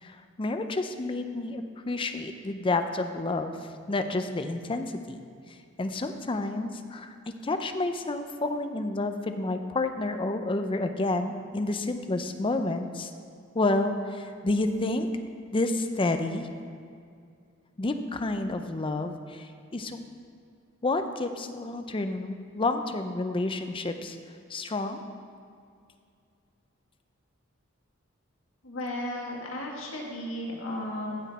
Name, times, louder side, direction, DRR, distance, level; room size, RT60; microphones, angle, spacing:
voice 1, 0.0-3.6 3.9-5.2 5.5-7.1 7.4-13.1 13.5-15.1 15.5-16.5 17.8-20.0 20.8-24.2 24.5-25.0, left 2 dB, 25° left, 7 dB, 0.5 m, -30 dB
voice 2, 28.6-31.2, left 1 dB, 75° left, -1 dB, 1.7 m, -34 dB
14.5 x 6.3 x 4.1 m, 2.3 s
head